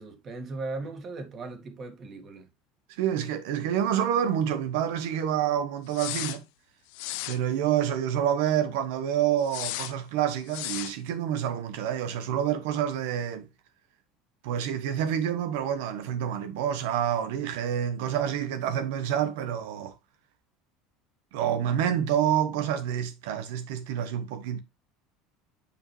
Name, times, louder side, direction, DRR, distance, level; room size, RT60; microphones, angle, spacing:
voice 1, 0.0-2.5, right 3 dB, 30° right, 2.1 m, -38 dB
voice 2, 3.0-6.4 7.3-13.5 14.4-19.9 21.3-24.6, right 10 dB, 80° right, 1.2 m, -28 dB
sound 1, 5.9-6.4 6.9-7.4 9.4-9.9 10.5-10.9, left 17 dB, 75° left, 0.8 m, -34 dB
8.5 x 5.1 x 3.2 m
cardioid pair, 145°, 0 cm